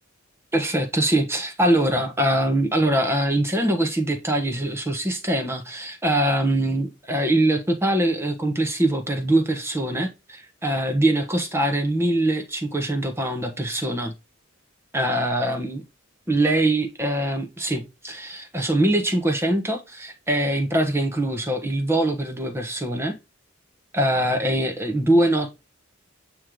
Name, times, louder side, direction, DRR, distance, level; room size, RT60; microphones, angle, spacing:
voice 1, 0.5-14.1 14.9-15.8 16.3-23.2 23.9-25.5, right 1 dB, 15° right, 1.1 m, -23 dB
8.5 x 3.2 x 3.8 m
head